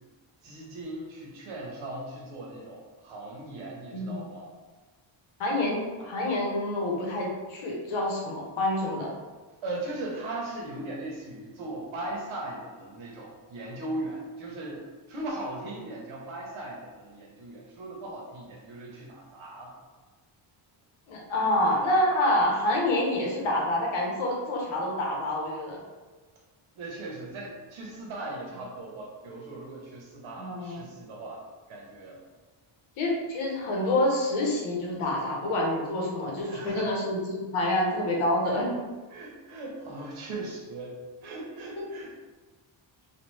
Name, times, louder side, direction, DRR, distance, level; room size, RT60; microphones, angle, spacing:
voice 1, 0.4-4.5 9.6-19.7 26.7-31.4 31.7-32.2 36.4-36.9 38.5-38.6 39.1-40.9 41.2-42.1, right 2 dB, 80° right, -2 dB, 1.0 m, -38 dB
voice 2, 5.4-9.1 21.1-25.8 30.4-30.8 33.0-38.7 41.8-41.9, left 1 dB, 90° left, -1 dB, 1.0 m, -27 dB
3.3 x 2.3 x 3.1 m, 1.3 s
cardioid pair, 170°, 47 cm